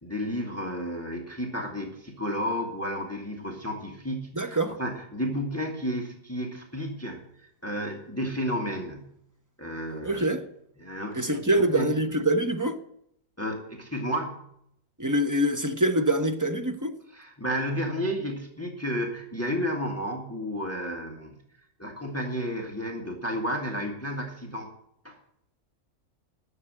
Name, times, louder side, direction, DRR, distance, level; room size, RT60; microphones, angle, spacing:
voice 1, 0.0-7.2 7.6-9.1 9.6-10.3 10.8-11.4 11.7-11.9 13.4-14.4 17.1-21.4 21.8-24.7 25.0-25.2, equal, 10° left, 1.7 m, -32 dB
voice 2, 4.3-4.8 10.0-10.4 11.1-12.8 15.0-17.0, right 1 dB, 15° right, 0.9 m, -25 dB
11.0 x 7.2 x 8.8 m
omnidirectional pair, 1.5 m